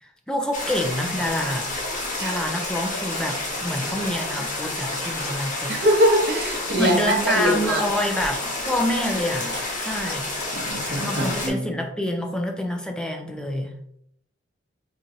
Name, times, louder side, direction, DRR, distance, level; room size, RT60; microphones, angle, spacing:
voice 1, 0.0-5.7 6.8-10.3 11.0-13.7, left 1 dB, 5° left, 3 dB, 0.5 m, -27 dB
sound 1, 0.5-11.5, left 2 dB, 45° left, 1.1 m, -29 dB
voice 2, 5.7-7.8 10.5-11.6, equal, 55° right, 1 dB, 0.8 m, -22 dB
4.4 x 2.6 x 2.7 m, 0.70 s
head